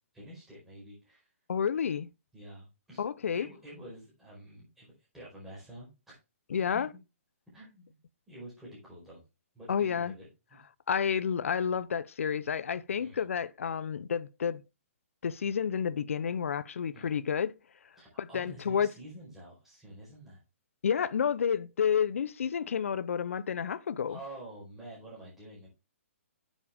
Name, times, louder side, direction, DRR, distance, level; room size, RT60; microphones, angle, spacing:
voice 1, 0.1-1.2 2.3-3.0 3.3-6.2 6.7-6.8 7.5-7.8 8.3-9.2 9.5-10.6 12.9-13.2 16.9-17.2 18.0-20.4 24.1-25.7, right 1 dB, 5° right, 4.6 m, -48 dB
voice 2, 1.5-2.1 3.0-3.5 6.5-6.9 9.7-10.1 10.9-14.6 15.2-17.5 18.2-18.9 20.8-24.2, left 7 dB, 70° left, 0.7 m, -30 dB
9.8 x 7.3 x 3.5 m
hypercardioid pair, 170°, 8 cm